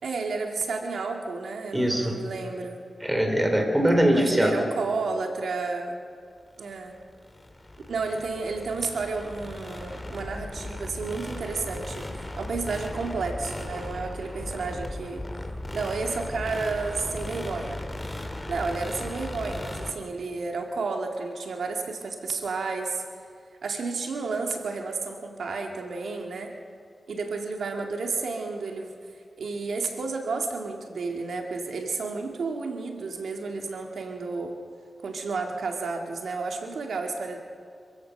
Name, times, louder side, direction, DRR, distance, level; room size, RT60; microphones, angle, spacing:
voice 1, 0.0-2.8 4.1-6.0 6.6-7.0 7.9-15.2 15.7-17.8 18.5-23.0 23.6-26.5 27.1-28.9 29.4-34.5 35.0-37.4, right 4 dB, 85° right, 3 dB, 2.2 m, -31 dB
voice 2, 1.7-2.1 3.0-4.6, equal, 10° right, 3 dB, 3.5 m, -22 dB
sound 1, 6.6-19.9, left 1 dB, 15° left, 1.9 m, -37 dB
26.0 x 16.0 x 6.6 m, 2.2 s
wide cardioid pair, 120°, 0 cm